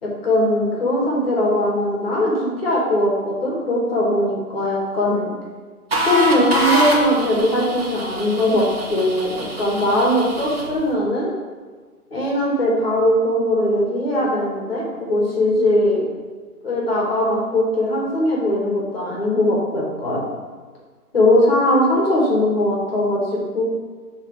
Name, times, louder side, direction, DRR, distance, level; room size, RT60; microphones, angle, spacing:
voice 1, 0.0-5.3 6.1-11.3 12.1-16.0 16.6-20.3 21.1-23.6, left 1 dB, 40° left, -4 dB, 1.8 m, -20 dB
sound 1, 5.9-10.7, right 1 dB, 40° right, 1.2 m, -25 dB
6.5 x 3.5 x 5.2 m, 1.5 s
hypercardioid pair, 170°, 46 cm